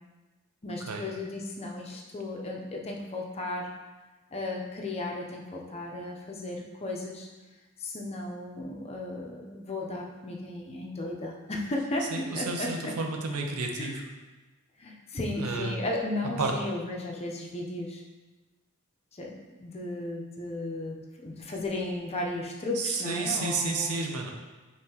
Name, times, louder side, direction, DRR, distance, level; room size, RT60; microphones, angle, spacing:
voice 1, 0.6-3.7 4.3-7.3 7.8-12.9 13.8-13.9 14.8-18.0 19.1-19.3 19.6-24.0, left 2 dB, 30° left, -1 dB, 0.5 m, -35 dB
voice 2, 12.1-14.0 15.4-15.8 16.4-16.5 22.8-24.3, right 3 dB, 90° right, 2 dB, 0.6 m, -31 dB
5.4 x 3.1 x 2.8 m, 1.2 s
head